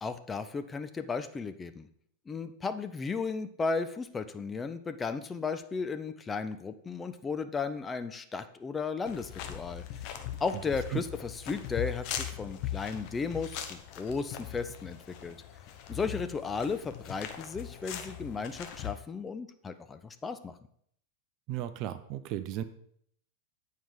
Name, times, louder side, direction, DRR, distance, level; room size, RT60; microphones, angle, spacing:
voice 1, 0.0-1.9 2.3-9.8 10.4-15.4 15.9-20.6, left 4 dB, 15° left, 9 dB, 0.5 m, -35 dB
sound 1, 9.1-18.9, left 11 dB, 45° left, 0.9 m, -40 dB
voice 2, 21.5-22.6, right 12 dB, 40° right, 12 dB, 0.6 m, -35 dB
9.0 x 4.7 x 5.1 m, 0.67 s
figure-of-eight pair, 90°, 0 cm